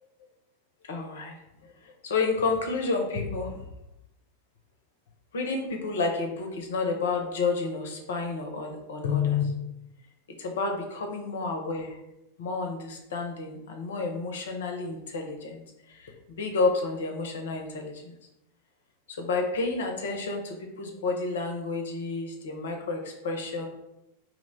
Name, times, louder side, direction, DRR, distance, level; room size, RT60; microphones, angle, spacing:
voice 1, 0.9-1.3 1.6-3.6 5.3-9.5 10.4-12.0 12.4-15.6 15.9-18.1 19.1-23.7, left 4 dB, 60° left, 3 dB, 0.5 m, -30 dB
2.9 x 2.1 x 3.8 m, 0.87 s
figure-of-eight pair, 90°, 0 cm